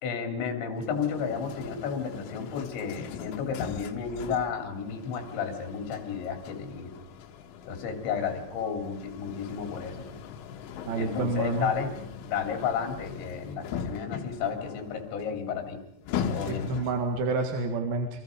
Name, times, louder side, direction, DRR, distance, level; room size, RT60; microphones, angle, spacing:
voice 1, 0.0-6.9 7.7-10.1 10.9-11.9 12.2-15.8 16.3-16.7, left 6 dB, 65° left, 4 dB, 5.5 m, -32 dB
sound 1, 0.8-17.2, left 7 dB, 90° left, 4.1 m, -40 dB
voice 2, 10.9-11.7 16.5-18.1, right 3 dB, 60° right, 4 dB, 3.3 m, -28 dB
28.5 x 24.5 x 5.3 m, 0.78 s
omnidirectional pair, 5.6 m